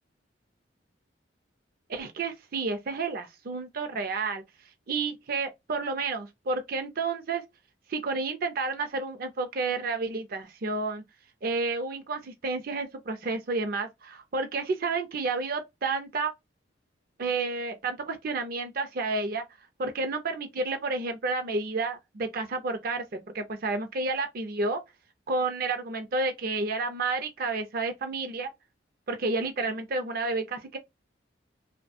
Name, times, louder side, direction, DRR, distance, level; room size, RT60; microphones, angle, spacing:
voice 1, 1.9-4.4 4.9-7.4 7.9-11.0 11.4-16.3 17.2-19.4 19.8-24.8 25.3-28.5 29.1-30.8, right 3 dB, 55° right, 0.5 m, -30 dB
2.9 x 2.1 x 2.5 m
head